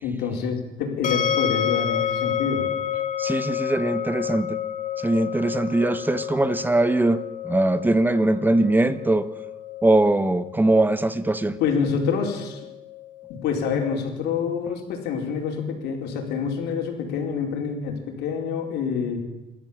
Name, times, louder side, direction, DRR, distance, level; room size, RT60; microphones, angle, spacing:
voice 1, 0.0-2.7 11.6-12.7 13.3-19.2, left 6 dB, 80° left, 2 dB, 4.8 m, -27 dB
sound 1, 1.0-14.0, left 10 dB, 50° left, 1.5 m, -30 dB
voice 2, 3.2-4.6 5.0-9.3 9.8-11.6, right 2 dB, 10° right, 13 dB, 1.2 m, -21 dB
26.5 x 13.0 x 7.4 m, 1.0 s
cardioid pair, 110°, 17 cm